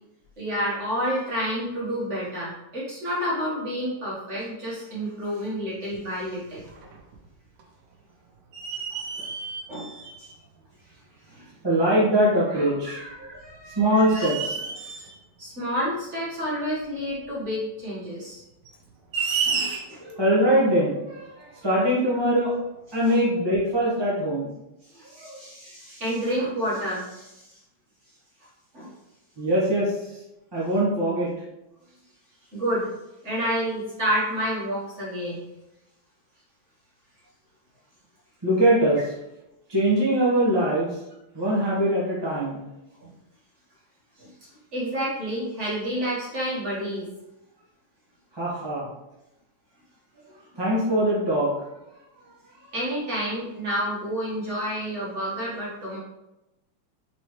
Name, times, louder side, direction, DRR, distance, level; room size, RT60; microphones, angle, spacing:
voice 1, 0.4-6.7 8.9-9.0 9.7-9.9 10.2-10.3 11.3-11.5 13.9-14.2 15.4-18.4 19.4-20.0 23.1-23.2 24.9-27.6 28.7-28.9 32.5-32.9 33.2-35.4 43.0-43.1 44.2-44.3 44.7-47.1 52.7-56.0, equal, 35° right, -7 dB, 1.6 m, -29 dB
sound 1, 5.9-6.0 6.5-7.3 7.6-7.7 8.5-10.3 11.4-11.5 13.3-13.6 14.1-15.2 17.0-17.1 18.6-20.1, right 5 dB, 90° right, 1.6 m, -31 dB
voice 2, 11.6-14.5 19.6-19.7 20.0-22.5 22.9-24.5 25.2-25.4 29.4-30.2 30.5-31.3 38.4-39.0 39.7-41.0 41.3-42.6 48.3-48.9 50.5-51.7 52.6-52.7, right 1 dB, 15° right, -7 dB, 1.0 m, -23 dB
4.2 x 4.1 x 3.1 m, 0.92 s
omnidirectional pair, 2.3 m